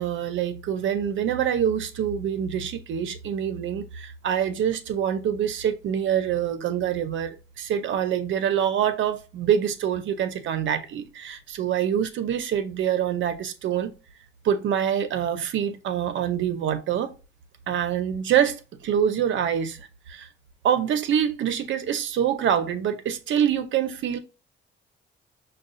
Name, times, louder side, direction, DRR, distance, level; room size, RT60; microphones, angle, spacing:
voice 1, 0.0-13.9 14.4-17.1 17.7-20.3 20.6-24.2, right 9 dB, 70° right, 0.7 m, -25 dB
6.3 x 2.3 x 2.5 m
cardioid pair, 90°, 20 cm